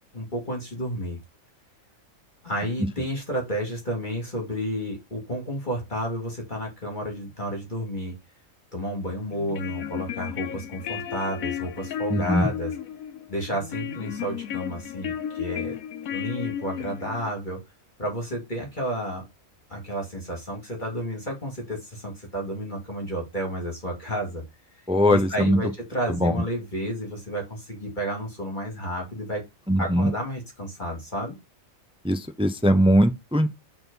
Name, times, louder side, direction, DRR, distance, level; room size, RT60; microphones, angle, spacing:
voice 1, 0.1-1.2 2.4-8.2 8.7-12.7 13.3-15.8 16.1-17.6 18.0-19.2 19.7-24.4 25.1-29.4 29.8-31.4, equal, 35° left, 2.5 m, -31 dB
sound 1, 9.3-17.3, left 9 dB, 90° left, 1.2 m, -33 dB
voice 2, 12.1-12.5 24.9-25.6 26.2-26.3 29.7-30.1 32.0-33.5, equal, 10° right, 0.4 m, -20 dB
6.3 x 3.8 x 5.4 m
omnidirectional pair, 1.4 m